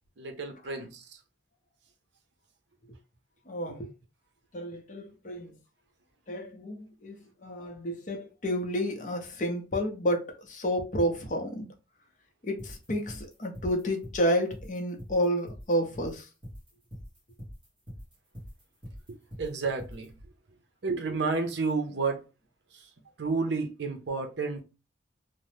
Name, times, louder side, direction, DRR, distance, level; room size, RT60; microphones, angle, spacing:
voice 1, 0.2-1.2 19.1-20.1 20.8-22.3 22.7-22.9 23.2-24.6, right 4 dB, 65° right, 0.6 m, -31 dB
voice 2, 3.5-3.9 4.5-5.5 6.3-11.7 12.4-16.3, equal, 40° left, 0.6 m, -30 dB
sound 1, 12.6-20.1, equal, 25° right, 1.1 m, -43 dB
2.8 x 2.0 x 3.1 m
head